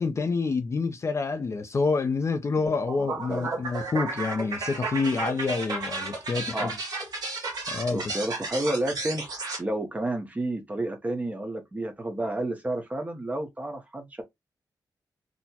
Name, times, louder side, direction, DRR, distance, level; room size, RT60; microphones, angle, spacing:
voice 1, 0.0-6.7 7.7-8.1, left 4 dB, 40° left, 0.4 m, -27 dB
sound 1, 2.7-9.6, right 3 dB, 60° right, 1.4 m, -33 dB
voice 2, 3.0-3.5 6.5-6.7 7.9-14.2, right 1 dB, 20° right, 0.8 m, -31 dB
4.1 x 2.0 x 2.8 m
wide cardioid pair, 130°, 7 cm